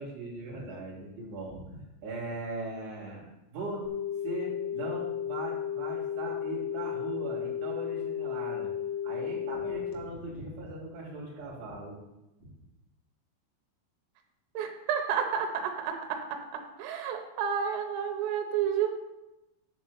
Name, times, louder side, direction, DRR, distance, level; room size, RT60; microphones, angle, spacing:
voice 1, 0.0-3.3 3.5-3.8 4.2-8.7 9.0-12.0, right 2 dB, 45° right, -4 dB, 3.2 m, -39 dB
sound 1, 3.9-9.9, left 9 dB, 90° left, 3.9 m, -34 dB
voice 2, 14.6-16.2 16.8-18.9, right 8 dB, 85° right, 4 dB, 3.5 m, -30 dB
8.1 x 4.2 x 6.9 m, 0.97 s
omnidirectional pair, 5.9 m